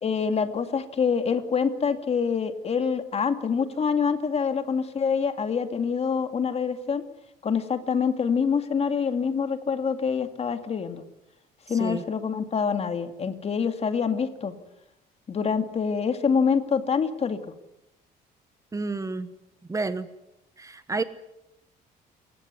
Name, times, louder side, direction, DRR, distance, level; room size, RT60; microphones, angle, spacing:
voice 1, 0.0-7.0 7.4-11.0 11.7-14.5 15.3-17.4, left 6 dB, 40° left, 2.4 m, -26 dB
voice 2, 18.7-19.3 19.7-20.1 20.6-21.0, right 3 dB, 20° right, 1.3 m, -29 dB
28.0 x 15.5 x 9.6 m
cardioid pair, 110°, 17 cm